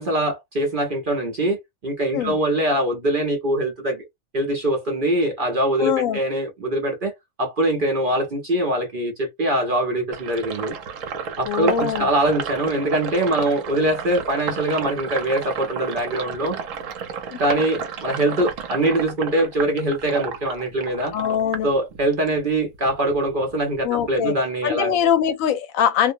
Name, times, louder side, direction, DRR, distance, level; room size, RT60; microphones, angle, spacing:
voice 1, 0.0-4.1 4.3-7.1 7.4-10.8 11.4-16.6 17.4-21.1 21.6-25.0, right 1 dB, 45° right, 0.7 m, -23 dB
voice 2, 5.8-6.2 11.5-12.1 17.3-17.4 21.1-21.7 23.8-24.3 24.6-26.1, left 9 dB, 75° left, 0.9 m, -22 dB
Sink (filling or washing), 10.1-22.4 22.7-24.2, right 6 dB, 70° right, 1.0 m, -32 dB
2.5 x 2.1 x 2.5 m
omnidirectional pair, 1.5 m